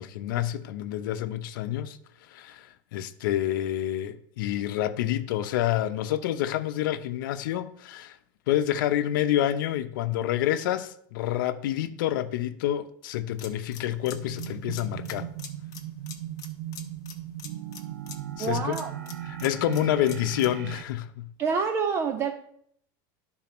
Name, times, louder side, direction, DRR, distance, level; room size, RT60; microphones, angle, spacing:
voice 1, 0.0-2.0 2.3-8.2 8.5-15.3 18.4-18.8 19.4-21.3, left 12 dB, 75° left, 0.7 m, -28 dB
sound 1, 13.3-20.6, left 9 dB, 35° left, 1.0 m, -46 dB
sound 2, 14.0-20.8, right 12 dB, 70° right, 0.6 m, -38 dB
voice 2, 18.4-18.9 21.4-22.3, right 5 dB, 25° right, 0.5 m, -27 dB
11.5 x 4.1 x 6.0 m
supercardioid pair, 165°, 11 cm